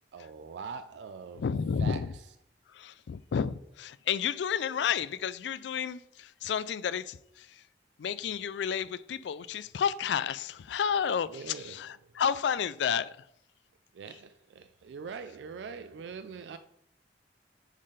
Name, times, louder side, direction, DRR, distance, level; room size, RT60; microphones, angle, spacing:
voice 1, 0.1-1.4 1.8-2.0 11.3-11.8 13.9-16.6, right 5 dB, 80° right, 0.3 m, -42 dB
voice 2, 1.4-2.1 2.7-7.6 8.0-13.3, left 7 dB, 80° left, 0.3 m, -31 dB
6.4 x 3.8 x 4.9 m
head